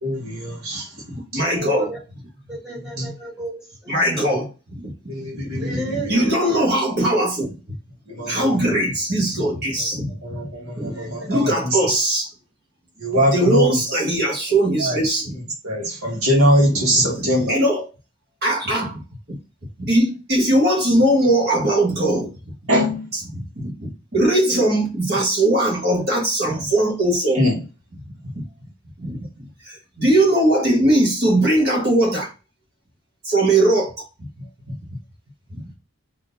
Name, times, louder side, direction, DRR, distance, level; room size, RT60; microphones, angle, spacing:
voice 1, 0.0-0.9 1.3-1.4 3.0-3.1 4.3-4.4 5.1-6.1 8.1-8.7 10.2-11.8 13.0-14.0 14.8-15.0 15.3-17.6 22.7-23.1 27.4-27.5, equal, 75° right, 1.8 m, -22 dB
voice 2, 0.9-1.9 3.9-4.5 4.8-4.9 5.3-5.8 6.1-7.5 8.3-10.1 10.8-11.0 11.3-12.3 13.3-15.3 16.9-17.9 18.4-19.0 19.3-19.4 19.8-22.5 23.3-27.4 28.3-28.4 29.0-32.3 33.3-34.8 35.5-35.8, right 1 dB, 45° right, 1.6 m, -20 dB
voice 3, 1.5-2.0 2.5-4.0 5.1-5.3 5.6-6.8 8.1-8.5 10.9-11.3, right 1 dB, 5° right, 1.4 m, -32 dB
3.9 x 3.2 x 4.0 m
head